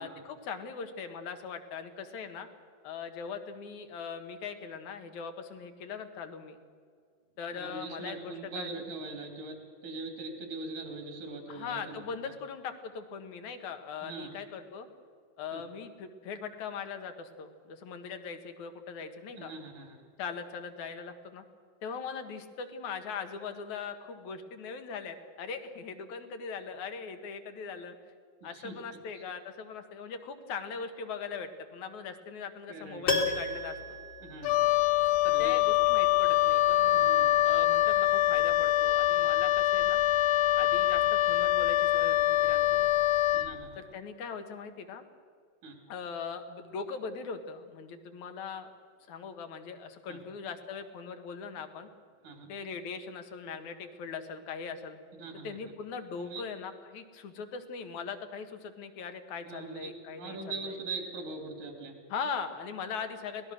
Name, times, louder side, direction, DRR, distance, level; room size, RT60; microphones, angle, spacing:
voice 1, 0.0-2.5 2.8-6.6 7.4-8.8 11.5-14.9 15.4-19.5 20.2-21.4 21.8-28.0 28.4-34.0 35.2-37.0 37.4-40.0 40.6-42.9 43.8-45.0 45.9-48.7 49.1-51.9 52.5-55.0 55.4-60.4 62.1-63.5, left 5 dB, 65° left, 8 dB, 2.8 m, -40 dB
voice 2, 7.5-12.0 14.0-14.3 15.5-15.6 19.3-20.0 28.5-28.7 29.1-29.2 32.7-33.2 34.2-34.7 35.3-35.5 36.9-37.3 43.3-43.8 45.6-45.8 50.1-50.2 52.2-52.5 55.2-55.6 56.2-56.4 59.5-59.9 60.2-62.0, right 3 dB, 75° right, 4 dB, 4.4 m, -41 dB
Piano, 33.1-35.1 35.4-35.5, left 3 dB, 40° left, 2.1 m, -32 dB
Wind instrument woodwind instrument, 34.4-43.5, left 14 dB, 85° left, 2.3 m, -24 dB
24.5 x 18.5 x 6.4 m, 2.1 s
omnidirectional pair, 3.7 m